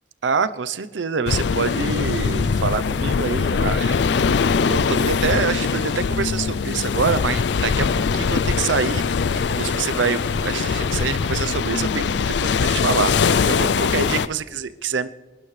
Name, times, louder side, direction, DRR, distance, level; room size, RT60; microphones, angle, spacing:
voice 1, 0.2-4.0 4.6-9.1 9.3-15.1, right 5 dB, 85° right, 13 dB, 0.7 m, -26 dB
sound 1, 1.3-14.3, left 5 dB, 70° left, 0.4 m, -22 dB
27.5 x 11.5 x 3.3 m, 1.3 s
head